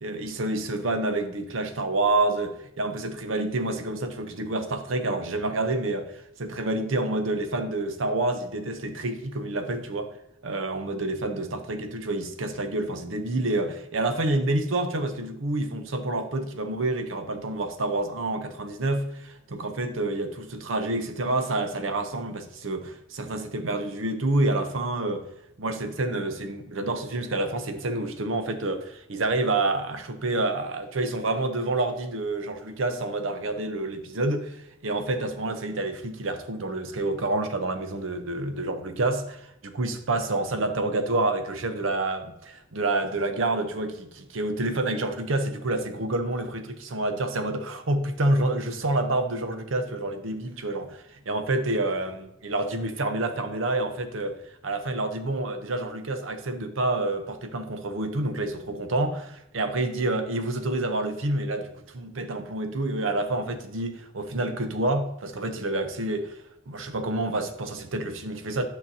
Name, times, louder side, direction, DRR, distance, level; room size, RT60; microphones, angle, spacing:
voice 1, 0.0-10.1 10.4-25.2 25.6-54.4 54.6-66.4 66.7-68.6, right 2 dB, 85° right, 0.8 m, -28 dB
8.9 x 5.7 x 2.7 m
head